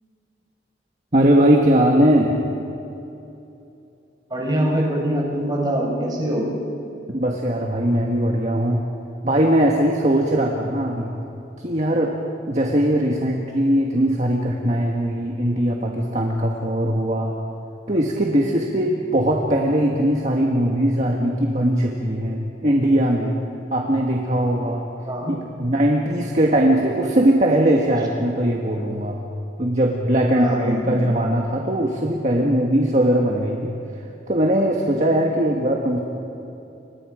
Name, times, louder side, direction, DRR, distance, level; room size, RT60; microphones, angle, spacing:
voice 1, 1.1-2.5 7.1-8.8 9.2-11.1 11.6-12.1 12.5-17.4 17.9-23.4 23.7-24.9 25.3-29.2 29.6-33.7 34.3-36.0, right 1 dB, 40° right, 0 dB, 1.7 m, -20 dB
voice 2, 4.3-6.5 25.1-25.4 30.3-31.1, right 1 dB, 20° right, -1 dB, 5.1 m, -24 dB
29.5 x 25.5 x 5.1 m, 2.8 s
head